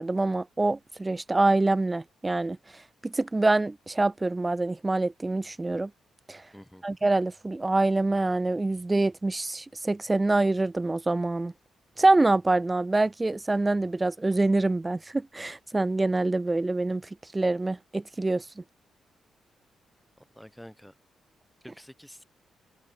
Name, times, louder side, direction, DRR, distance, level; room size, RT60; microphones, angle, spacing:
voice 1, 0.0-2.6 3.0-5.9 6.3-6.4 6.8-11.5 12.0-18.6, right 2 dB, 25° right, 1.2 m, -25 dB
voice 2, 6.5-6.8 20.4-20.9 21.6-22.2, equal, 5° left, 4.5 m, -48 dB
supercardioid pair, 60°, 0 cm